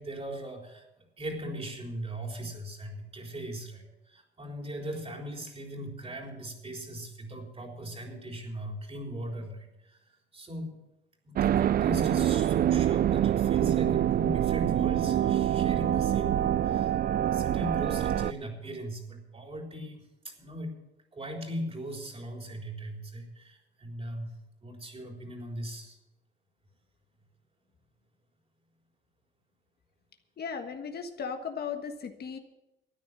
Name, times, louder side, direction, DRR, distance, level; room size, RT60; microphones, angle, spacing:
voice 1, 0.0-10.8 11.2-20.8 21.1-24.4 24.6-26.0, equal, 30° right, 2 dB, 4.0 m, -39 dB
sound 1, 11.4-18.3, right 11 dB, 50° right, 0.4 m, -25 dB
voice 2, 30.4-32.4, left 6 dB, 55° left, 6 dB, 1.5 m, -36 dB
13.5 x 9.6 x 7.5 m, 0.93 s
cardioid pair, 90°, 20 cm